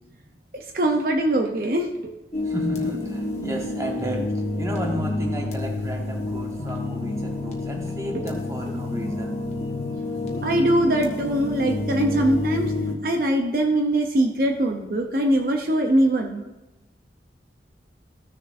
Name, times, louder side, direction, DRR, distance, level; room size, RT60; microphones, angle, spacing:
voice 1, 0.5-2.1 8.1-8.2 10.4-12.7 13.0-16.4, right 1 dB, 55° right, 3 dB, 0.7 m, -22 dB
sound 1, 2.3-13.0, left 2 dB, 40° left, 1.3 m, -29 dB
voice 2, 2.4-4.2 4.5-9.4, right 1 dB, 15° right, 1 dB, 1.1 m, -32 dB
14.5 x 6.7 x 2.6 m, 1.0 s
head